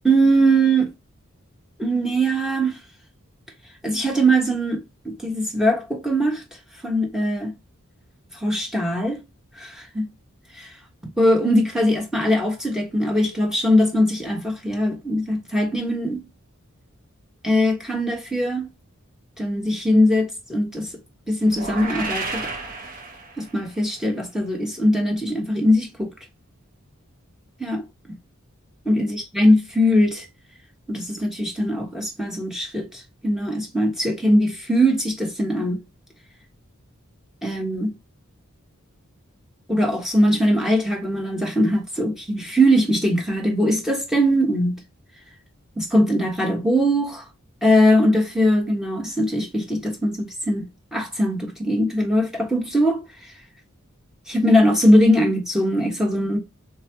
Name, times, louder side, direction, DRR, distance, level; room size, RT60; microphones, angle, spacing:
voice 1, 0.0-0.9 1.8-2.8 3.8-6.4 6.8-7.5 8.4-9.2 9.6-10.1 10.5-10.7 11.2-16.2 17.4-18.7 19.4-20.9 21.3-22.5 23.4-26.1 27.6-27.8 28.8-30.2 30.9-35.8 37.4-37.9 39.7-44.8 45.8-47.2 47.6-53.0 54.3-56.4, equal, ahead, 1.3 m, -21 dB
sound 1, 21.4-23.7, right 3 dB, 40° right, 1.6 m, -31 dB
3.4 x 3.1 x 2.8 m
head